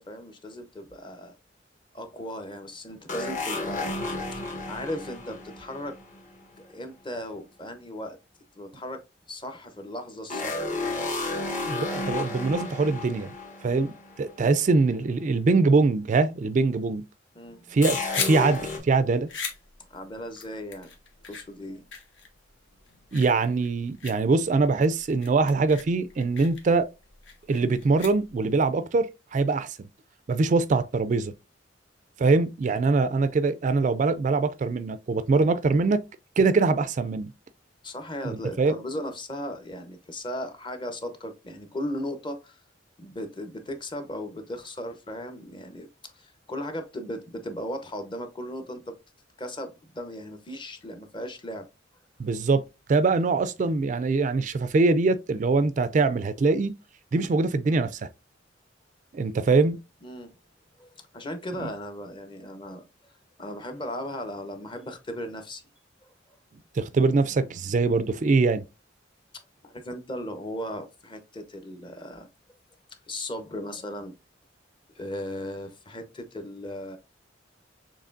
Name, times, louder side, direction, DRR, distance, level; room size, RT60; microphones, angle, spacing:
voice 1, 0.0-1.4 1.9-6.0 6.6-8.2 8.5-11.0 13.6-13.8 17.3-17.8 19.8-20.9 21.3-21.9 37.8-42.6 43.0-48.9 49.4-51.7 60.0-60.3 60.8-62.9 63.4-65.6 66.0-66.1 69.3-72.3 73.1-74.2 74.9-77.0, left 1 dB, 25° left, 0.7 m, -37 dB
sound 1, 3.1-6.6 10.3-14.4 14.6-14.7 17.8-18.8, left 3 dB, 40° left, 1.1 m, -32 dB
voice 2, 11.6-13.3 13.6-13.9 14.2-17.0 17.7-19.3 23.1-26.9 27.5-29.8 30.3-31.3 32.2-36.0 36.4-37.3 38.2-38.7 52.2-52.6 52.9-56.7 57.1-58.1 59.1-59.8 61.6-61.7 66.8-68.6, right 3 dB, 40° right, 0.3 m, -23 dB
sound 2, 17.7-28.6, left 6 dB, 75° left, 1.2 m, -39 dB
6.6 x 3.1 x 2.5 m
head